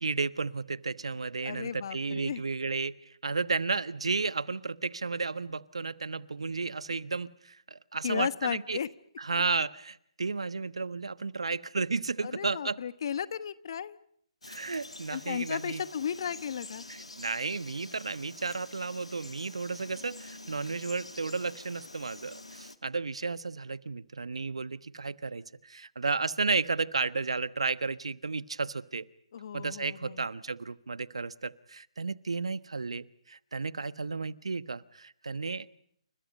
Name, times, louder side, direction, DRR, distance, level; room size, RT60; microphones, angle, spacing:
voice 1, 0.0-8.8 9.2-12.8 14.5-15.8 16.9-29.0 29.5-35.7, right 4 dB, 75° right, 16 dB, 1.2 m, -33 dB
voice 2, 1.4-2.4 8.0-8.9 12.2-14.0 15.1-16.9 29.3-30.2, left 8 dB, 50° left, 15 dB, 1.2 m, -34 dB
Frog, 14.4-22.8, left 2 dB, 85° left, 2.2 m, -47 dB
29.5 x 27.5 x 5.4 m, 0.68 s
figure-of-eight pair, 135°, 3 cm